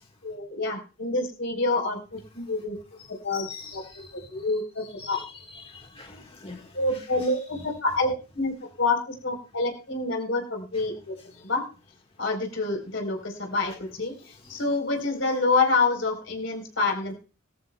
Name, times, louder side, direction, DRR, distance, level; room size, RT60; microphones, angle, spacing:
voice 1, 0.2-2.8 3.2-3.5 3.7-5.2 6.7-11.1 11.4-11.6 12.2-17.1, left 3 dB, 70° left, 3 dB, 4.1 m, -27 dB
voice 2, 3.3-4.1 5.0-5.2 5.5-6.8 11.4-11.5 14.4-14.6, left 4 dB, 30° left, 2 dB, 1.6 m, -43 dB
19.5 x 14.0 x 2.3 m, 0.34 s
head